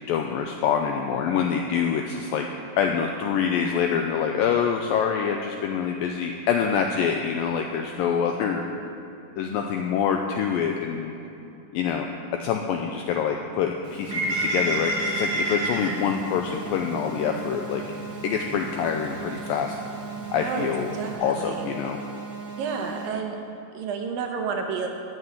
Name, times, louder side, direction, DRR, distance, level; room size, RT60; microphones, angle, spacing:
voice 1, 0.1-2.5 2.8-8.7 9.4-11.1 11.7-12.1 12.4-17.8 18.2-19.8 20.3-20.9 21.2-22.0, left 7 dB, 85° left, 3 dB, 2.0 m, -25 dB
Bird, 13.8-21.1, right 1 dB, 30° right, 1.4 m, -32 dB
sound 1, 14.1-23.1, right 5 dB, 90° right, 5.1 m, -38 dB
voice 2, 20.9-21.7 22.6-23.4 23.7-24.9, right 6 dB, 70° right, 3 dB, 2.4 m, -30 dB
13.5 x 6.3 x 9.0 m, 2.8 s
omnidirectional pair, 4.7 m